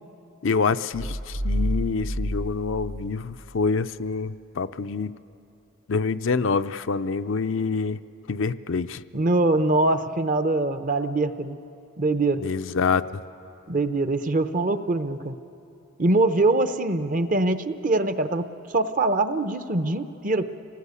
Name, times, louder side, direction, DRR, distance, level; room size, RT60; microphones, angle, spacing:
voice 1, 0.4-5.1 5.9-8.0 8.3-9.0 12.4-13.0, left 4 dB, 60° left, 11 dB, 0.5 m, -26 dB
sound 1, 0.9-3.7, equal, 55° right, 1.1 m, -29 dB
voice 2, 9.1-11.6 12.0-12.5 13.7-15.4 16.0-20.5, right 2 dB, 40° right, 10 dB, 0.8 m, -23 dB
27.5 x 19.0 x 8.3 m, 2.7 s
head